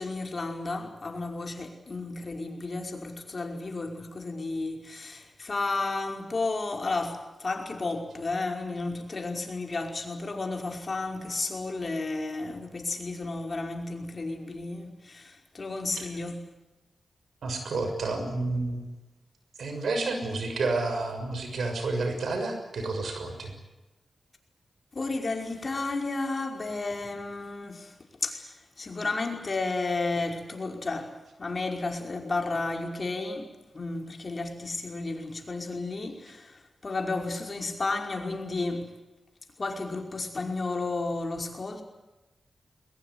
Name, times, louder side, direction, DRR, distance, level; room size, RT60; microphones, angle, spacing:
voice 1, 0.0-16.4 24.9-27.9 28.2-38.9 39.6-41.8, left 3 dB, 45° left, 5.3 m, -32 dB
voice 2, 17.4-18.9 19.6-23.5, right 3 dB, 85° right, 6.5 m, -30 dB
22.0 x 21.5 x 9.7 m
cardioid pair, 70°, 0 cm